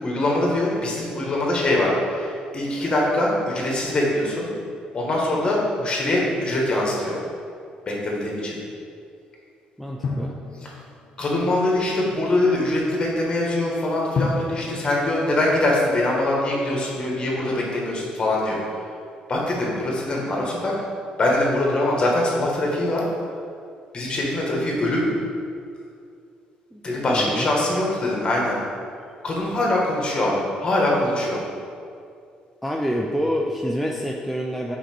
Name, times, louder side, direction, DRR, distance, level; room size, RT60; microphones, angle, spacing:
voice 1, 0.0-4.5 4.9-7.2 7.9-8.6 11.2-18.6 19.3-20.7 21.2-23.0 23.9-25.1 26.8-28.6 29.2-31.4, left 1 dB, 35° left, -2 dB, 1.5 m, -23 dB
voice 2, 9.8-10.4 26.7-27.5 32.6-34.8, equal, ahead, -1 dB, 0.4 m, -27 dB
Drum, 10.0-11.5 14.1-16.3, left 3 dB, 65° left, 0.8 m, -31 dB
5.6 x 4.3 x 4.4 m, 2.4 s
cardioid pair, 100°, 3 cm